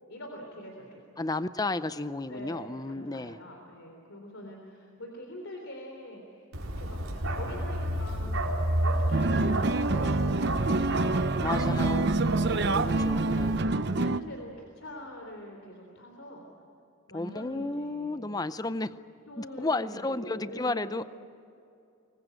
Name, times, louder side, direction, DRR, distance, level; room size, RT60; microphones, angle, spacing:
voice 1, 0.1-1.0 2.3-6.5 6.8-12.1 12.9-16.5 17.1-18.4 19.3-21.0, equal, 65° left, 3.5 m, -44 dB
voice 2, 1.2-3.4 11.4-12.2 12.6-13.6 17.1-19.0 19.4-21.0, left 2 dB, 20° left, 0.5 m, -33 dB
Bark, 6.5-13.6, right 1 dB, 85° right, 4.5 m, -31 dB
sound 1, 9.1-14.2, right 3 dB, 50° right, 0.7 m, -27 dB
25.5 x 21.0 x 9.1 m
head